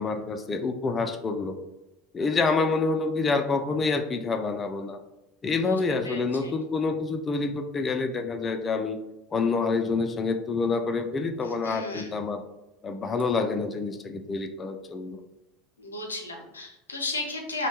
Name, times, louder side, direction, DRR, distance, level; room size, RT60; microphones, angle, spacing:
voice 1, 0.0-1.6 2.1-5.0 5.4-9.0 9.3-12.4 12.8-15.2, left 4 dB, 25° left, 6 dB, 0.3 m, -27 dB
voice 2, 5.5-5.8 6.0-6.5 11.4-12.2 15.8-17.7, left 2 dB, 85° left, 1 dB, 0.5 m, -35 dB
2.8 x 2.2 x 2.8 m, 0.95 s
figure-of-eight pair, 75°, 0 cm